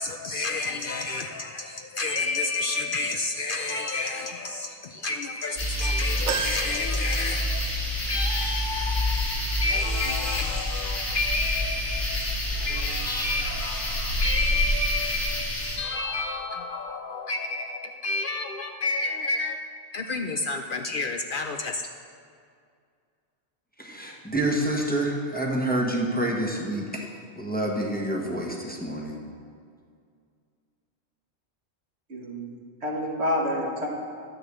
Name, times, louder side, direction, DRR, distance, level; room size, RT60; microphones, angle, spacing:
voice 1, 0.0-7.7 8.1-19.6 19.9-21.8, left 3 dB, 55° left, 0.7 m, -30 dB
sound 1, 5.6-15.8, left 1 dB, 80° left, 2.5 m, -28 dB
sound 2, 6.3-7.9 8.3-8.4 9.6-9.7, right 6 dB, 90° right, 1.0 m, -33 dB
voice 2, 23.8-27.1 27.4-29.2, right 1 dB, 10° left, 1.2 m, -27 dB
voice 3, 32.1-32.5 32.8-33.9, left 1 dB, 70° right, 1.8 m, -28 dB
10.5 x 6.7 x 7.5 m
omnidirectional pair, 1.2 m